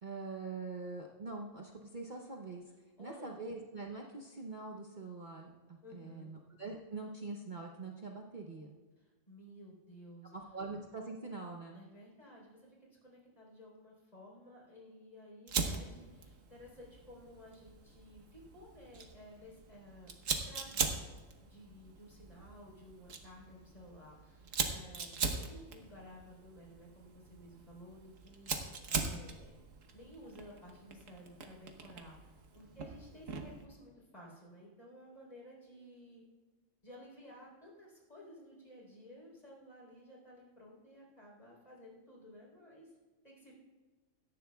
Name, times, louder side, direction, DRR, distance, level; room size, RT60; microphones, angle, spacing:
voice 1, 0.0-2.6 3.0-8.7 10.3-11.8, right 3 dB, 40° right, 0 dB, 0.9 m, -44 dB
voice 2, 3.0-3.3 5.8-6.3 9.0-10.3 11.7-20.9 21.4-28.5 28.9-29.5 29.9-36.2 36.8-42.9 43.2-43.5, equal, 30° left, -4 dB, 4.0 m, -55 dB
Fire, 15.5-33.6, right 5 dB, 90° right, 1.5 m, -41 dB
17.0 x 13.5 x 2.3 m, 1.3 s
omnidirectional pair, 1.3 m